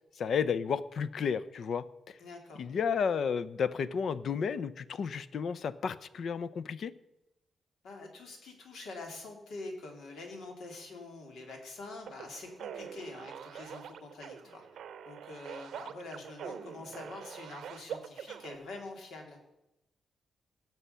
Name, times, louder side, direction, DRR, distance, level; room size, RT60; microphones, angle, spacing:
voice 1, 0.2-2.2 2.6-6.9, left 6 dB, 55° left, 17 dB, 0.5 m, -32 dB
voice 2, 2.2-2.7 7.8-14.7 15.0-19.4, left 3 dB, 80° left, 2 dB, 2.8 m, -45 dB
sound 1, 12.1-18.6, right 8 dB, 85° right, 0.7 m, -44 dB
17.5 x 6.9 x 5.6 m, 0.92 s
wide cardioid pair, 160°, 0 cm